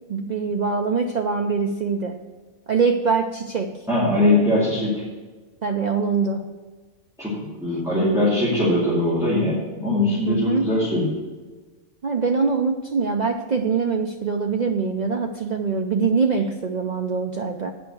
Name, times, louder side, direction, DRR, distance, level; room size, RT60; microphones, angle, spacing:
voice 1, 0.1-2.2 2.7-3.8 5.6-6.5 10.3-10.7 12.0-17.7, right 5 dB, 85° right, 3 dB, 0.3 m, -23 dB
voice 2, 3.9-5.0 7.2-11.1, left 1 dB, ahead, -10 dB, 2.5 m, -21 dB
8.7 x 5.7 x 7.9 m, 1.3 s
omnidirectional pair, 1.5 m